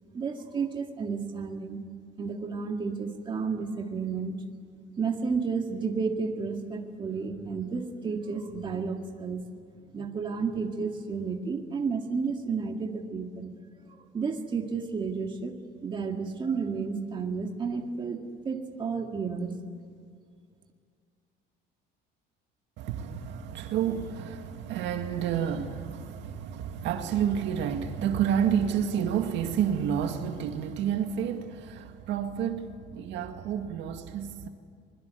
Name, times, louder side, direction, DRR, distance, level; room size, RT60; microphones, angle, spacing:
voice 1, 0.1-1.8 2.2-4.4 5.0-9.4 9.9-13.5 14.1-15.5 15.8-18.2 18.4-19.6, right 5 dB, 25° right, 2.0 m, -31 dB
voice 2, 22.8-34.5, right 8 dB, 65° right, 2.0 m, -30 dB
25.0 x 21.5 x 8.3 m
cardioid pair, 165°, 20 cm